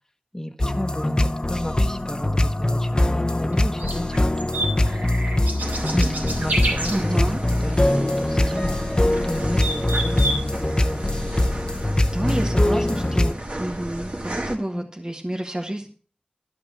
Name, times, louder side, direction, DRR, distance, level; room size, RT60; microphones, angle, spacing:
voice 1, 0.3-5.0 5.9-8.8 9.2-11.3 12.2-12.4 12.7-13.3 14.7-14.9, equal, 15° left, 5 dB, 1.2 m, -33 dB
sound 1, 0.6-13.3, left 1 dB, 30° left, 0.8 m, -22 dB
sound 2, 3.5-7.1 8.9-9.2 9.4-10.4, right 1 dB, 85° right, 3.2 m, -29 dB
sound 3, 5.6-14.6, right 1 dB, 50° right, 2.5 m, -33 dB
voice 2, 6.9-7.4 11.7-15.9, right 1 dB, 30° right, 2 dB, 1.7 m, -30 dB
12.5 x 6.0 x 7.7 m, 0.41 s
wide cardioid pair, 55°, 3 cm